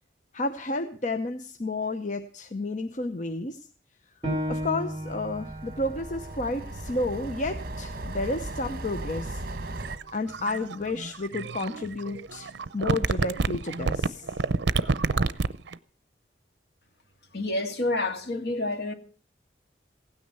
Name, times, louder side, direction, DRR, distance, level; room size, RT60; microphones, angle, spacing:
voice 1, 0.3-3.6 4.5-9.4 10.1-14.3, left 2 dB, 45° left, 0.9 m, -31 dB
Piano, 4.2-9.4 9.9-10.0 10.6-11.1, equal, 30° right, 3.2 m, -37 dB
sound 1, 4.3-10.0, right 2 dB, 55° right, 1.5 m, -38 dB
sound 2, 9.8-15.7, right 3 dB, 75° right, 0.6 m, -28 dB
voice 2, 17.3-18.9, left 2 dB, 65° left, 2.2 m, -28 dB
16.0 x 9.6 x 6.8 m
head